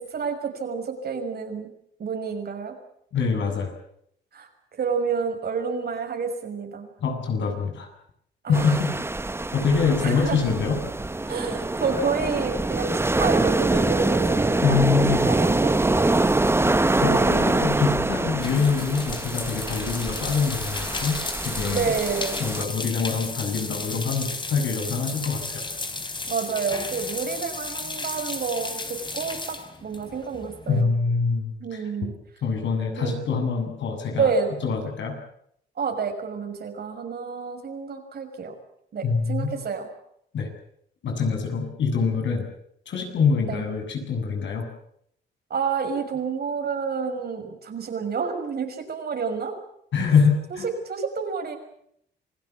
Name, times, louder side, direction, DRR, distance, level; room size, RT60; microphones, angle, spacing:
voice 1, 0.0-1.7 2.0-2.7 4.3-6.9 8.4-8.8 9.7-10.5 11.3-16.6 17.0-17.5 21.7-22.4 26.3-30.9 31.6-32.1 33.0-33.3 34.2-34.5 35.8-38.5 38.9-39.9 43.5-43.6 45.5-49.5 50.5-51.6, right 5 dB, 50° right, 5 dB, 6.2 m, -29 dB
voice 2, 3.1-3.7 7.0-7.9 8.5-8.9 9.5-10.8 14.6-15.3 16.7-16.8 17.0-21.9 22.4-25.6 30.7-31.8 32.4-34.3 34.6-35.2 39.0-39.5 40.3-40.5 41.0-42.4 42.9-44.7 49.9-50.7, left 5 dB, 65° left, 4 dB, 7.7 m, -24 dB
sound 1, 8.5-22.6, right 2 dB, 10° right, 1.1 m, -24 dB
sound 2, 18.2-30.8, left 3 dB, 25° left, 4.0 m, -34 dB
27.5 x 18.0 x 8.4 m, 0.71 s
cardioid pair, 90°, 20 cm